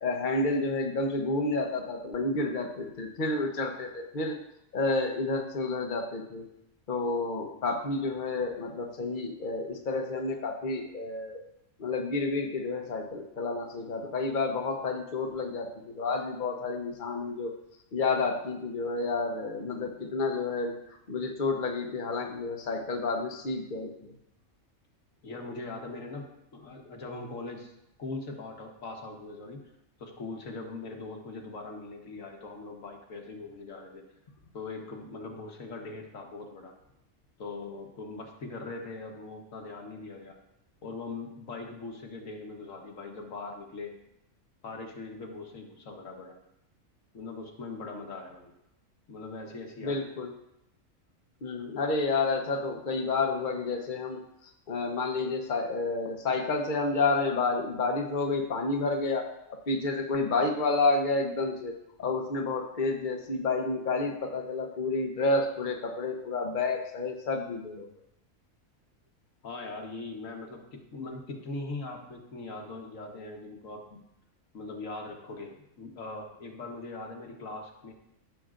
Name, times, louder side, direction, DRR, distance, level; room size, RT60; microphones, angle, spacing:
voice 1, 0.0-4.4 4.7-6.5 6.9-11.4 11.8-17.5 17.9-20.8 21.1-24.1 49.8-50.3 51.4-59.3 59.7-67.9, left 3 dB, 40° left, 2 dB, 1.0 m, -30 dB
voice 2, 25.2-27.7 28.0-29.7 30.0-34.0 34.5-36.7 37.4-40.4 40.8-43.9 44.6-46.4 47.1-48.5 49.1-50.0 69.4-74.0 74.5-77.9, left 3 dB, 70° left, 2 dB, 1.6 m, -41 dB
14.5 x 6.8 x 2.5 m, 0.81 s
omnidirectional pair, 1.4 m